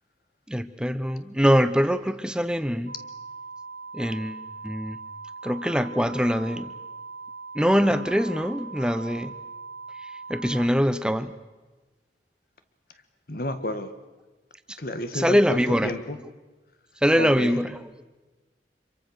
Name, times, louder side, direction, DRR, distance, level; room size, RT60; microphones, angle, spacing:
voice 1, 0.5-2.9 3.9-5.0 5.4-6.7 7.5-9.3 10.0-11.3 14.7-14.8 15.1-16.0 17.0-17.9, equal, 5° right, 12 dB, 0.9 m, -23 dB
sound 1, 2.9-10.7, right 4 dB, 75° right, 1.7 m, -40 dB
voice 2, 13.3-13.9 14.8-16.2 17.1-17.6, left 1 dB, 55° left, 10 dB, 1.7 m, -31 dB
26.5 x 23.5 x 6.6 m, 1.2 s
head